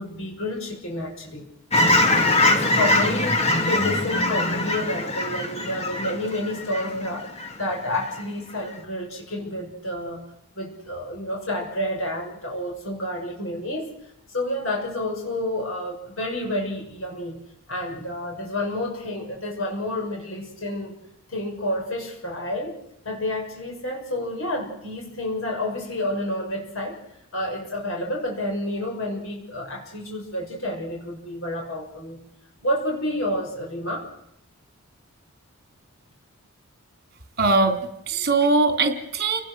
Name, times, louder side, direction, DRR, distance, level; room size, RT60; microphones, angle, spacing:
voice 1, 0.0-1.5 2.4-10.2 10.5-13.9 14.3-17.4 17.7-20.9 21.3-22.8 23.0-27.0 27.3-32.2 32.6-34.1, left 1 dB, 75° left, 0 dB, 6.5 m, -29 dB
Fowl / Chirp tweet, 1.7-7.5 8.0-8.2, left 2 dB, 30° left, 2.5 m, -22 dB
voice 2, 37.4-39.4, right 3 dB, 50° right, 6 dB, 3.8 m, -21 dB
30.0 x 19.5 x 6.5 m, 0.78 s
head